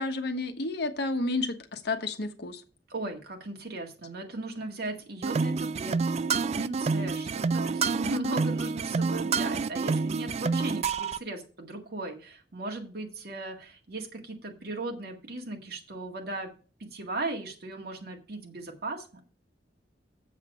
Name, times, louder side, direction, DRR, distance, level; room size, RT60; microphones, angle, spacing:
voice 1, 0.0-2.6, left 2 dB, 65° left, 7 dB, 1.2 m, -31 dB
voice 2, 2.9-16.5 16.8-19.1, right 2 dB, 60° right, 2 dB, 1.9 m, -37 dB
sound 1, 5.2-11.2, right 4 dB, 40° right, 0.3 m, -28 dB
7.4 x 7.3 x 5.5 m, 0.37 s
head